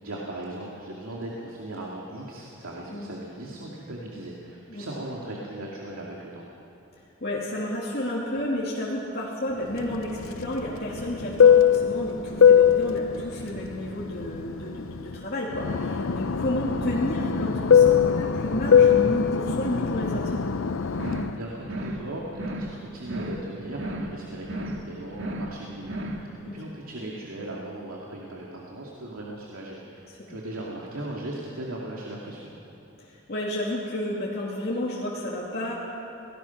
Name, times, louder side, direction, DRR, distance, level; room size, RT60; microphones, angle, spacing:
voice 1, 0.0-6.5 20.9-32.5, right 1 dB, 90° right, -3 dB, 2.6 m, -38 dB
voice 2, 7.2-20.4 26.4-26.6 30.3-30.4 33.3-35.7, left 1 dB, 50° left, -6 dB, 2.8 m, -31 dB
Fixed-wing aircraft airplane, 9.8-15.2 15.5-21.3, left 7 dB, 75° left, 0.6 m, -21 dB
sound 1, 20.9-21.4 21.6-22.0 22.3-22.8 23.0-23.5 23.7-24.2 24.4-24.8 25.1-25.6 25.8-26.2, right 1 dB, 60° right, 2.2 m, -34 dB
27.5 x 19.0 x 6.0 m, 2.9 s
head